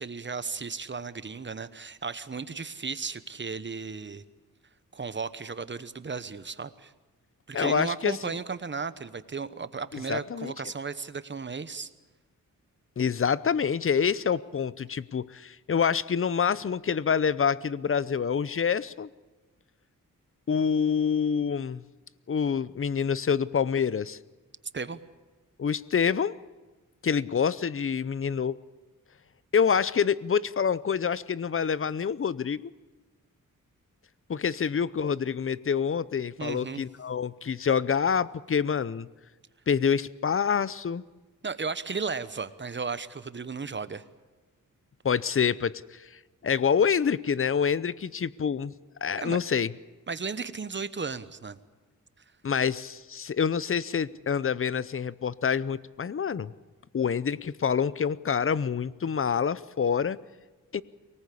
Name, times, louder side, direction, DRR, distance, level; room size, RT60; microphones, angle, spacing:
voice 1, 0.0-4.2 4.9-6.9 7.5-11.9 24.7-25.0 36.4-36.8 41.4-44.0 49.2-49.4 50.1-51.6, right 5 dB, 35° right, 14 dB, 1.1 m, -35 dB
voice 2, 7.5-8.2 10.1-10.5 13.0-19.1 20.5-21.8 22.3-24.2 25.6-26.3 27.0-28.6 29.5-32.7 34.3-39.1 39.7-41.0 45.0-46.1 46.4-48.7 49.0-49.7 52.4-56.5 56.9-60.2 60.7-60.8, left 7 dB, 40° left, 19 dB, 0.7 m, -27 dB
24.0 x 18.5 x 8.5 m, 1.3 s
wide cardioid pair, 90°, 33 cm